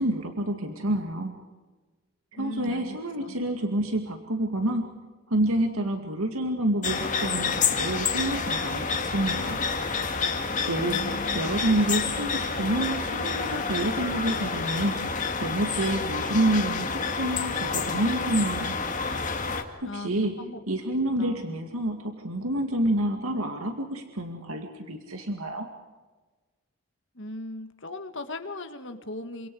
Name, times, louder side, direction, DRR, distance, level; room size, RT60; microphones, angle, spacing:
voice 1, 0.0-1.4 2.3-4.9 5.3-9.6 10.7-11.0 11.3-15.0 15.4-18.7 19.8-20.4 20.7-25.7, right 1 dB, 85° right, 4 dB, 2.3 m, -28 dB
voice 2, 2.3-3.4 10.8-11.5 19.8-20.6 21.2-21.6 27.1-29.5, left 2 dB, 60° left, 7 dB, 1.7 m, -38 dB
sound 1, 6.8-19.6, left 5 dB, 35° left, 2.2 m, -29 dB
28.5 x 26.0 x 4.9 m, 1.3 s
head